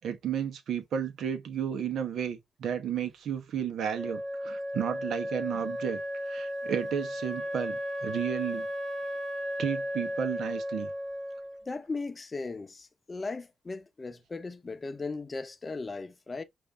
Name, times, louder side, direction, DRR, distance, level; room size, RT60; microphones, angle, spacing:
voice 1, 0.0-8.7 9.6-10.9, right 8 dB, 75° right, 1.1 m, -33 dB
Wind instrument woodwind instrument, 3.9-11.6, equal, 25° right, 1.6 m, -35 dB
voice 2, 11.7-16.4, left 3 dB, 30° left, 0.8 m, -37 dB
5.3 x 2.7 x 3.4 m
cardioid pair, 95°, 0 cm